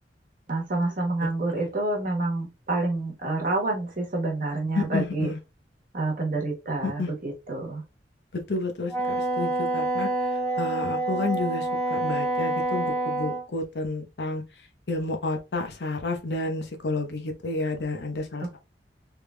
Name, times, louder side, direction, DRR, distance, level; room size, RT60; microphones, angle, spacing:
voice 1, 0.5-5.3 5.9-7.8, right 2 dB, 50° right, 1.2 m, -28 dB
voice 2, 4.7-5.4 6.8-7.1 8.3-10.1 10.6-14.4 14.9-18.6, left 2 dB, 65° left, 0.8 m, -30 dB
Wind instrument woodwind instrument, 8.9-13.4, right 2 dB, 10° left, 1.3 m, -27 dB
3.6 x 3.3 x 2.2 m
head